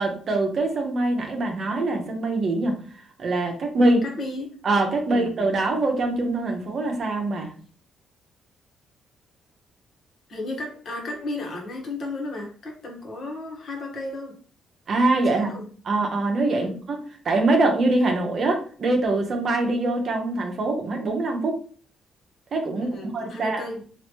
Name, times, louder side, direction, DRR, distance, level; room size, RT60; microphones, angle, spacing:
voice 1, 0.0-2.8 3.2-4.0 4.6-7.5 14.9-15.6 15.8-21.6 22.5-23.6, right 2 dB, 50° right, 2 dB, 0.8 m, -23 dB
voice 2, 4.0-4.6 5.1-5.3 10.3-14.3 15.1-15.7 16.5-16.8 22.8-23.8, left 2 dB, 50° left, 0 dB, 1.2 m, -34 dB
3.1 x 2.5 x 2.9 m, 0.43 s
cardioid pair, 90°, 0 cm